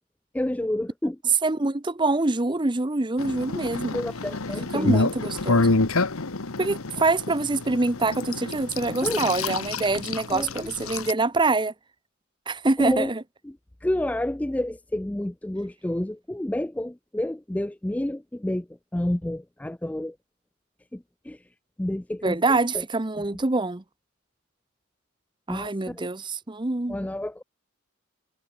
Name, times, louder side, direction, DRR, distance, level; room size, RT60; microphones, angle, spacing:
voice 1, 0.3-1.2 3.9-4.9 9.0-9.2 10.3-11.0 12.8-13.1 13.4-18.7 18.9-20.2 20.9-21.4 21.8-22.8 25.5-26.0 26.9-27.4, left 1 dB, 5° left, 0.3 m, -29 dB
voice 2, 1.4-4.0 4.7-5.7 6.6-11.7 12.5-13.2 22.2-23.8 25.5-27.0, right 2 dB, 20° right, 0.7 m, -25 dB
sound 1, 3.2-11.1, left 3 dB, 80° left, 1.4 m, -27 dB
head